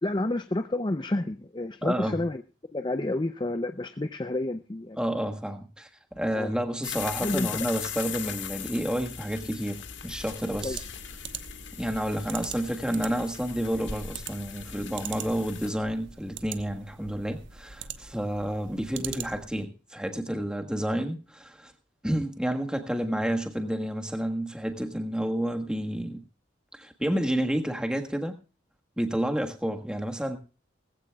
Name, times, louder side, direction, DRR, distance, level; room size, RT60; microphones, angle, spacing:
voice 1, 0.0-2.4 2.7-5.0 6.3-6.5 7.2-7.7 10.6-10.8, left 2 dB, 25° left, 0.6 m, -30 dB
voice 2, 1.8-2.2 5.0-10.8 11.8-21.7 22.0-26.2 26.7-28.4 29.0-30.4, equal, 5° right, 1.5 m, -30 dB
sound 1, 6.8-15.7, left 8 dB, 70° left, 1.8 m, -39 dB
sound 2, 10.5-19.6, right 8 dB, 70° right, 1.2 m, -42 dB
19.5 x 15.5 x 2.3 m
head